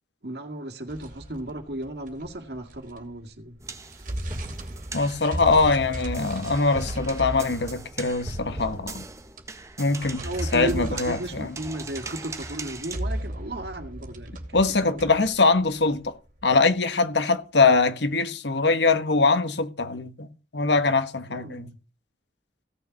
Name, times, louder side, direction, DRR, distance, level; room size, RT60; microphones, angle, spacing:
voice 1, 0.2-3.6 10.2-15.2 21.3-21.8, right 1 dB, 65° right, 2.0 m, -35 dB
sound 1, 0.9-3.2 3.6-16.6, right 1 dB, 50° right, 2.7 m, -37 dB
sound 2, 3.6-13.0, right 2 dB, 15° right, 1.2 m, -39 dB
voice 2, 4.9-9.0 9.8-10.2 10.5-11.5 14.5-16.2 16.4-20.3 20.5-21.7, left 3 dB, 75° left, 1.5 m, -22 dB
16.5 x 6.8 x 5.8 m
head